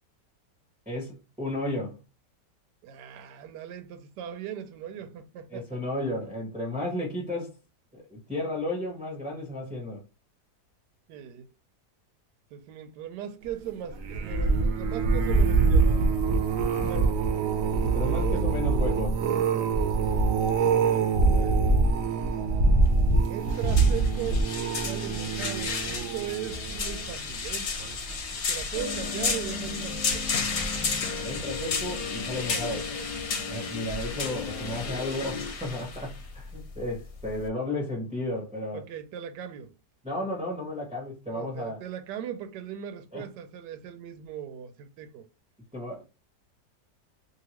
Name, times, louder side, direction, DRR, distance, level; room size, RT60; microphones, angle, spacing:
voice 1, 0.9-2.0 5.5-7.6 7.9-10.0 16.8-17.1 17.8-19.2 31.2-32.8 33.5-38.8 40.0-41.8 43.1-43.2 45.7-46.0, left 1 dB, 5° right, 0.7 m, -33 dB
voice 2, 2.8-5.8 11.1-11.5 12.5-16.1 16.9-17.1 18.0-18.5 20.8-21.7 23.3-27.7 28.5-30.4 32.5-33.1 38.7-39.7 41.3-45.3, right 10 dB, 85° right, 1.2 m, -39 dB
sound 1, 13.9-27.3 27.8-28.1 28.4-28.5, right 4 dB, 65° right, 0.8 m, -24 dB
sound 2, 22.8-37.5, left 5 dB, 55° left, 0.8 m, -33 dB
sound 3, 28.7-35.5, left 4 dB, 90° left, 1.2 m, -37 dB
2.8 x 2.6 x 2.9 m
omnidirectional pair, 1.8 m